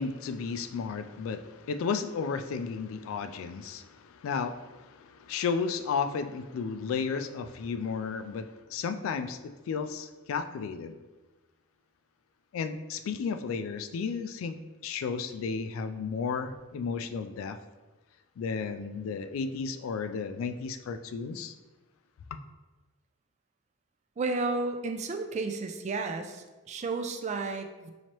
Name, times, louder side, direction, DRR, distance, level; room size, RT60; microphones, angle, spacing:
voice 1, 0.0-10.9 12.5-17.6 18.4-21.5, left 5 dB, 85° left, 10 dB, 0.3 m, -33 dB
voice 2, 24.2-27.9, right 3 dB, 35° right, 6 dB, 0.3 m, -32 dB
3.0 x 2.8 x 4.3 m, 1.2 s
head